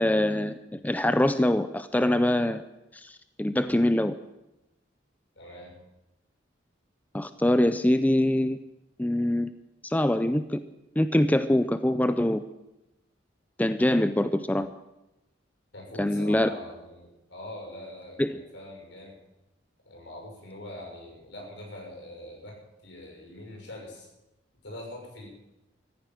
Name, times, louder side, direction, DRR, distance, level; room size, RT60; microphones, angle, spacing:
voice 1, 0.0-2.6 2.9-4.1 7.1-8.6 9.0-9.5 9.8-10.6 11.0-12.4 13.6-14.7 16.0-16.5 18.2-18.3, left 1 dB, 10° left, 11 dB, 0.5 m, -24 dB
voice 2, 5.4-5.7 15.7-19.2 19.8-22.6 22.8-24.1 24.6-25.3, left 1 dB, 70° left, -1 dB, 6.5 m, -43 dB
14.5 x 10.5 x 9.2 m, 0.94 s
head